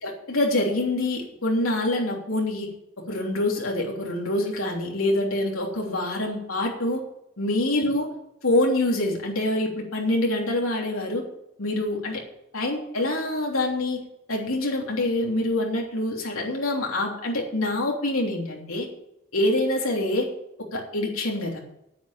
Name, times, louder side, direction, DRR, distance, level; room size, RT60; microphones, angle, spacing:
voice 1, 0.0-2.7 3.1-7.0 7.4-8.1 8.4-11.2 11.6-12.2 12.5-14.0 14.3-18.9 19.3-20.3 20.7-21.6, left 1 dB, 80° left, -1 dB, 3.2 m, -25 dB
9.2 x 9.0 x 8.9 m, 0.86 s
head